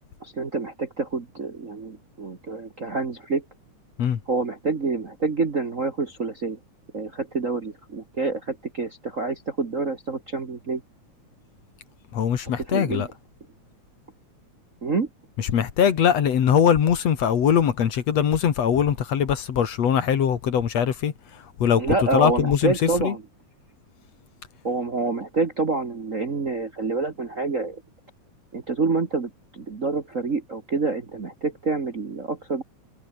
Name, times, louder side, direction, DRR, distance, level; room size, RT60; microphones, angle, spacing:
voice 1, 0.2-3.4 4.3-6.6 6.9-10.8 12.7-13.0 14.8-15.1 21.8-23.2 24.6-27.8 28.5-32.6, right 3 dB, 35° right, 1.5 m, -27 dB
voice 2, 12.1-13.1 15.4-23.2, left 8 dB, 60° left, 2.9 m, -22 dB
omnidirectional pair, 3.4 m